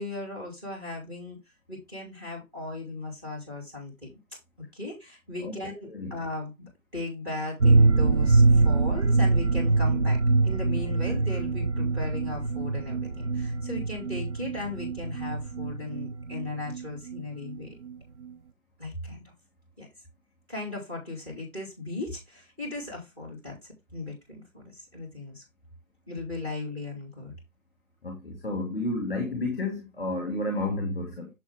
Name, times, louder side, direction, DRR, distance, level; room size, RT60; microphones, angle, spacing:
voice 1, 0.0-1.4 1.7-4.1 4.7-10.2 10.4-17.7 18.8-19.2 19.8-19.9 20.5-24.1 24.5-25.4 26.1-27.3, left 2 dB, 15° right, 4.2 m, -37 dB
sound 1, 7.6-17.2 17.5-17.6 17.9-18.0, right 3 dB, 55° right, 1.0 m, -24 dB
sound 2, 9.6-15.8, right 1 dB, 85° right, 2.2 m, -36 dB
voice 2, 28.0-31.3, left 2 dB, 10° left, 2.1 m, -31 dB
7.3 x 7.0 x 3.6 m
figure-of-eight pair, 165°, 41 cm